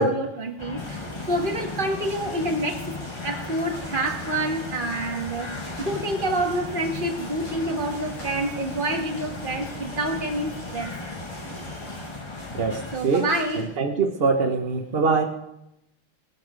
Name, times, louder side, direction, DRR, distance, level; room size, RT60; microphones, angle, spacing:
voice 1, 0.0-3.0 3.2-5.5 5.8-10.9 12.9-13.6, right 1 dB, 25° right, 3 dB, 1.7 m, -27 dB
sound 1, 0.6-13.0, left 3 dB, 25° left, 0.6 m, -36 dB
sound 2, 0.8-12.1, equal, 65° left, 9.0 m, -43 dB
sound 3, 2.0-3.0 3.3-4.0 4.3-9.5 10.8-13.7, left 1 dB, 50° left, 8.3 m, -48 dB
voice 2, 12.5-13.3 13.5-15.2, right 4 dB, 55° right, 5 dB, 0.6 m, -23 dB
19.0 x 12.5 x 5.1 m, 0.86 s
omnidirectional pair, 2.4 m